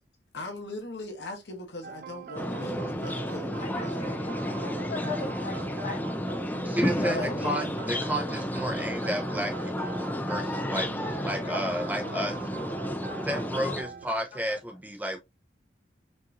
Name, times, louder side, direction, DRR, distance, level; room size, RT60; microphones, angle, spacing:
voice 1, 0.3-4.0 7.0-7.7, left 1 dB, 75° left, 1.2 m, -39 dB
sound 1, 1.8-14.1, right 6 dB, 55° right, 0.3 m, -43 dB
sound 2, 2.4-13.8, left 1 dB, 10° left, 0.4 m, -32 dB
voice 2, 3.6-7.3 11.3-11.8 12.1-12.3 12.7-13.4 14.1-14.6, left 3 dB, 45° left, 1.8 m, -40 dB
voice 3, 6.6-7.7 8.1-12.4 13.2-15.2, equal, 10° right, 0.8 m, -32 dB
5.2 x 2.7 x 2.6 m
head